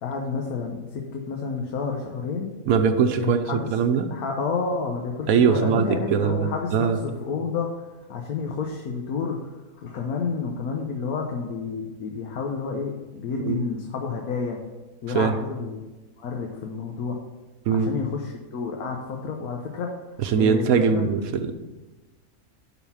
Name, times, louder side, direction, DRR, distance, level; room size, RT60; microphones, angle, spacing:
voice 1, 0.0-2.5 3.2-3.7 4.1-9.4 9.8-14.6 15.0-15.8 16.2-17.2 17.7-19.9 20.3-21.1, left 5 dB, 80° left, 1 dB, 1.4 m, -30 dB
voice 2, 2.7-4.1 5.3-7.0 13.4-13.6 15.1-15.4 17.7-17.9 20.2-21.5, right 6 dB, 75° right, 8 dB, 1.1 m, -21 dB
11.0 x 4.2 x 5.6 m, 1.2 s
omnidirectional pair, 1.5 m